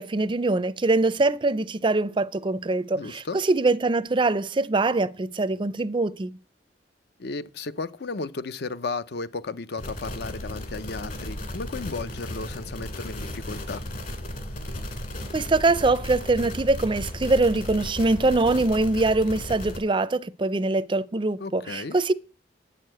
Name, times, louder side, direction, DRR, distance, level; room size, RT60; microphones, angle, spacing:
voice 1, 0.0-6.3 15.3-22.1, right 2 dB, 30° right, 0.5 m, -23 dB
voice 2, 2.9-3.4 7.2-13.8 21.4-22.0, left 3 dB, 65° left, 0.7 m, -34 dB
sound 1, 9.8-19.8, left 1 dB, 50° left, 2.4 m, -35 dB
8.8 x 6.6 x 7.8 m
head